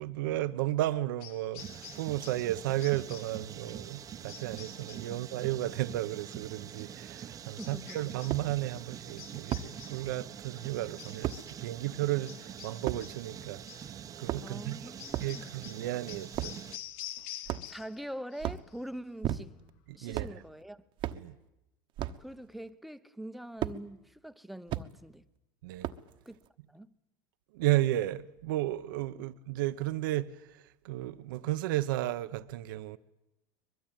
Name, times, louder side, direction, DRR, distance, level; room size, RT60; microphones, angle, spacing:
voice 1, 0.0-13.6 13.9-14.8 15.2-16.6 19.9-20.4 21.1-21.3 25.6-25.9 27.5-33.0, right 15 dB, 80° right, 0.9 m, -33 dB
sound 1, 1.2-2.5 2.8-3.4 4.3-5.1 7.6-8.4 9.2-10.1 11.0-11.6 12.3-13.3 13.7-13.9 15.0-18.0 18.3-18.8, left 13 dB, 65° left, 1.0 m, -48 dB
sound 2, 1.6-16.8, right 9 dB, 30° right, 0.9 m, -45 dB
sound 3, 7.3-7.4 8.3-8.5 9.5-9.7 11.2-11.4 12.9-13.0 14.1-14.7 15.1-15.3 16.3-16.6 17.5-17.9 18.4-18.7 19.2-19.7 20.1-20.4 21.0-21.2 22.0-22.2 23.6-23.8 24.7-24.9 25.8-26.1, right 12 dB, 50° right, 1.2 m, -34 dB
voice 2, 7.6-8.0 14.4-15.6 17.6-19.6 19.9-20.8 22.2-25.3 26.3-26.4 26.7-26.9, right 1 dB, ahead, 0.9 m, -44 dB
23.5 x 21.5 x 9.1 m
supercardioid pair, 115°, 11 cm